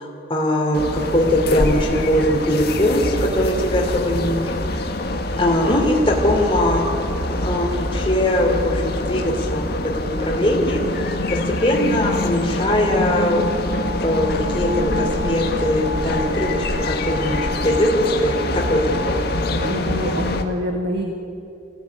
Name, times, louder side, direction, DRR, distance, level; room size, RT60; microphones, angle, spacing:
voice 1, 0.0-4.9 5.4-6.9 7.3-9.7 10.0-13.5 14.0-18.4 18.7-19.2, left 1 dB, 25° left, -3 dB, 3.2 m, -21 dB
sound 1, 0.7-20.4, left 1 dB, 55° left, 1.9 m, -25 dB
sound 2, 12.7-19.7, left 2 dB, 85° left, 1.1 m, -33 dB
voice 2, 19.5-21.1, equal, 60° right, 3 dB, 1.7 m, -25 dB
26.0 x 17.0 x 9.6 m, 2.7 s
head